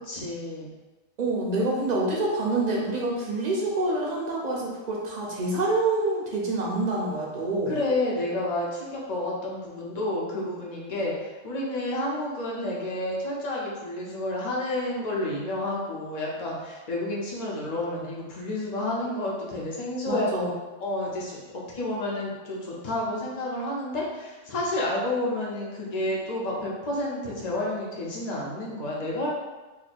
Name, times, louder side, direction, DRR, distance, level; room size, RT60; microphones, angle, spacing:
voice 1, 0.0-0.7 7.7-20.3 20.8-29.3, left 1 dB, 40° left, -4 dB, 0.8 m, -30 dB
voice 2, 1.2-7.8 20.1-20.5, right 2 dB, 40° right, -3 dB, 0.7 m, -27 dB
2.9 x 2.7 x 4.2 m, 1.2 s
omnidirectional pair, 1.2 m